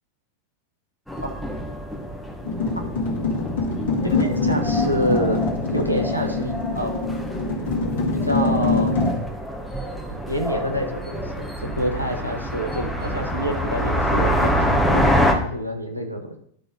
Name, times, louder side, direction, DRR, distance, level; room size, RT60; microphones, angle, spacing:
sound 1, 1.1-15.3, equal, ahead, 1.2 m, -26 dB
sound 2, 2.5-9.1, left 3 dB, 60° left, 1.9 m, -24 dB
voice 1, 4.0-5.4 5.7-7.2 8.2-8.9 10.3-16.4, equal, 85° right, 3 dB, 1.2 m, -27 dB
11.5 x 3.9 x 4.1 m, 0.63 s
figure-of-eight pair, 90°, 0 cm